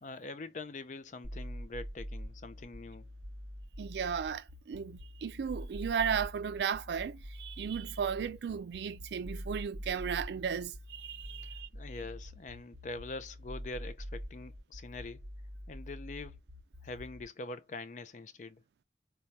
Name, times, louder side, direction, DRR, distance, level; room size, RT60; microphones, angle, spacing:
voice 1, 0.0-3.1 11.4-15.2 15.7-16.4 16.8-18.6, left 3 dB, 45° left, 0.4 m, -44 dB
sound 1, 1.2-17.2, equal, 45° right, 0.8 m, -45 dB
voice 2, 3.8-11.7, right 7 dB, 70° right, 0.3 m, -35 dB
4.5 x 2.2 x 2.6 m
head